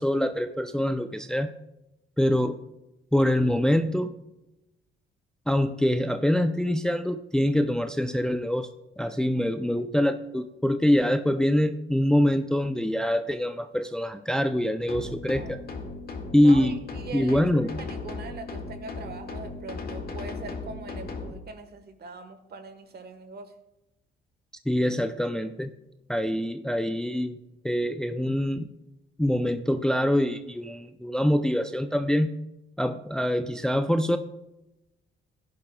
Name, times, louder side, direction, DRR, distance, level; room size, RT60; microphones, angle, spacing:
voice 1, 0.0-1.5 2.2-2.6 3.1-4.1 5.5-8.7 9.0-15.6 16.3-16.8 17.1-17.7 24.7-25.7 26.1-27.4 27.6-28.7 29.2-32.3 32.8-34.2, left 1 dB, 5° left, 8 dB, 0.5 m, -24 dB
sound 1, 14.9-21.3, left 3 dB, 50° left, 2.0 m, -37 dB
voice 2, 16.4-17.4 17.8-23.5, right 4 dB, 55° right, 8 dB, 1.4 m, -42 dB
16.0 x 10.5 x 2.3 m, 0.94 s
cardioid pair, 90°, 20 cm